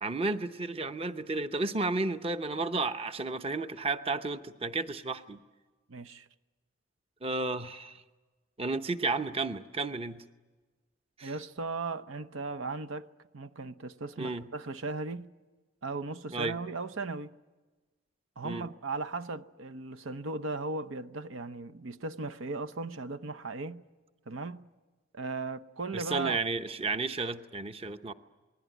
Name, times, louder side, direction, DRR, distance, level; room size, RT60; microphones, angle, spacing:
voice 1, 0.0-5.4 7.2-8.0 8.6-10.2 11.2-11.3 14.2-14.5 16.3-16.6 18.4-18.7 25.9-28.1, right 3 dB, 30° right, 0.8 m, -32 dB
voice 2, 5.9-6.3 11.2-15.3 15.8-17.3 18.4-23.8 24.3-24.7 25.1-26.4, right 3 dB, 85° right, 0.8 m, -37 dB
27.5 x 20.5 x 9.2 m
head